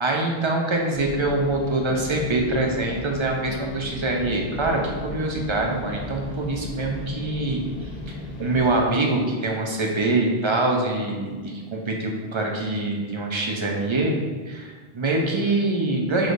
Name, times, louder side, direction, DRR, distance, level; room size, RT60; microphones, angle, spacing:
voice 1, 0.0-7.6 8.1-14.2 14.5-16.3, right 2 dB, 35° right, 0 dB, 0.5 m, -24 dB
sound 1, 0.9-8.8, left 1 dB, 65° left, 0.9 m, -36 dB
6.2 x 3.2 x 2.5 m, 1.5 s
omnidirectional pair, 1.0 m